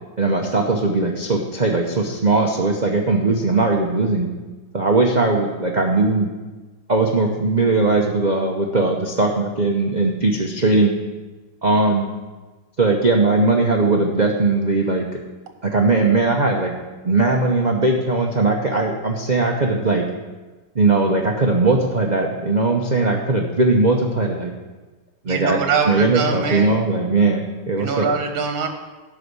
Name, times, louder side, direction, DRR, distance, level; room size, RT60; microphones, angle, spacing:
voice 1, 0.2-4.3 4.7-6.3 6.9-10.9 11.6-12.1 12.8-15.1 15.6-16.7 17.0-20.0 20.7-24.5 25.2-25.6 25.9-28.1, right 3 dB, 85° right, 1 dB, 0.4 m, -19 dB
voice 2, 25.2-26.7 27.8-28.7, right 5 dB, 70° right, 4 dB, 2.1 m, -23 dB
11.5 x 4.9 x 8.1 m, 1.2 s
omnidirectional pair, 2.2 m